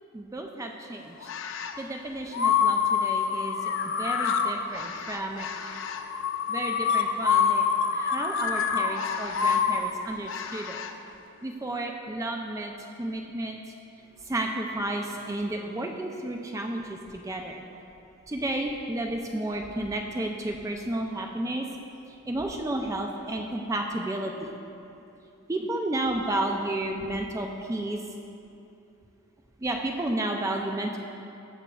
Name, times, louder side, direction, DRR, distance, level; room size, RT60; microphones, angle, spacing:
voice 1, 0.1-3.6 4.0-5.5 6.5-7.6 7.9-10.8 11.4-12.7 13.0-13.6 14.2-17.6 18.3-21.7 22.3-24.5 25.5-28.0 29.6-31.0, right 1 dB, 15° right, 2 dB, 0.3 m, -32 dB
sound 1, 1.2-1.8 2.3-10.9, left 6 dB, 60° left, 0.4 m, -27 dB
13.5 x 6.0 x 2.3 m, 2.7 s
head